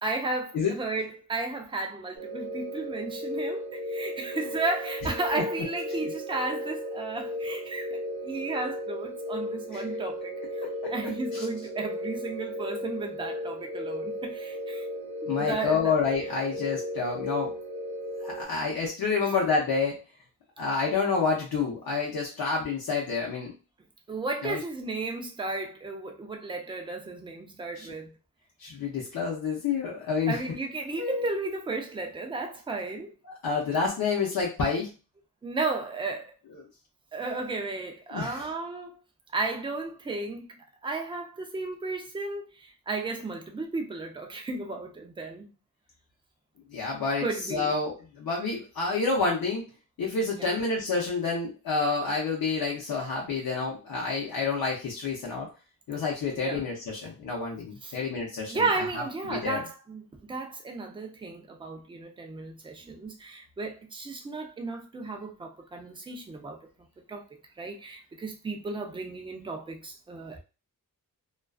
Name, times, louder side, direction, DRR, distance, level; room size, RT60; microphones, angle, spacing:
voice 1, 0.0-10.6 10.9-14.9 15.2-16.0 24.1-28.1 30.3-33.1 35.4-36.3 37.1-39.0 39.3-45.5 47.2-47.7 50.3-50.6 56.3-56.6 57.8-58.0 58.5-60.0 60.3-66.7 67.1-67.2 67.6-70.4, right 3 dB, 15° right, 0.4 m, -34 dB
sound 1, 2.2-18.4, left 1 dB, 50° right, 0.7 m, -35 dB
voice 2, 10.4-11.4 15.2-17.5 18.2-20.0 20.6-23.5 24.4-24.6 27.8-27.9 28.6-30.4 31.0-31.3 33.2-34.9 36.5-36.6 38.1-38.4 46.7-49.6 50.0-55.5 55.9-58.6 58.9-59.6, left 4 dB, 70° left, 0.7 m, -29 dB
2.3 x 2.3 x 2.3 m
wide cardioid pair, 140°, 37 cm